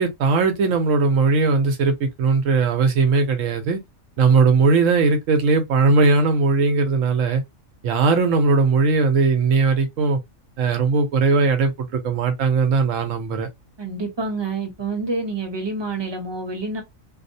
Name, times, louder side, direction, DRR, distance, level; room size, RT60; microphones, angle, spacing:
voice 1, 0.0-3.8 4.2-7.4 7.8-10.2 10.6-13.5, right 4 dB, 80° right, 1.1 m, -19 dB
voice 2, 13.8-16.8, right 3 dB, 25° right, 0.8 m, -27 dB
2.8 x 2.1 x 2.6 m
omnidirectional pair, 1.3 m